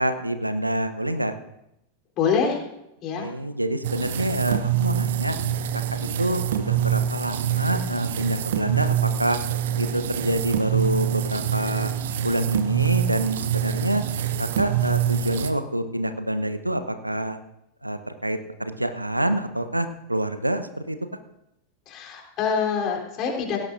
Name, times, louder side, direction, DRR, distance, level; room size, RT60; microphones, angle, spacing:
voice 1, 0.0-1.3 3.1-5.4 5.9-9.4 9.8-11.9 12.2-14.0 14.4-17.4 17.8-21.0, right 1 dB, 85° right, 10 dB, 0.9 m, -26 dB
voice 2, 2.2-2.6 3.0-3.3 21.9-23.6, left 6 dB, 35° left, -1 dB, 3.6 m, -25 dB
sound 1, 3.8-15.5, right 9 dB, 60° right, 0.8 m, -25 dB
18.0 x 17.0 x 2.6 m, 0.84 s
figure-of-eight pair, 90°, 0 cm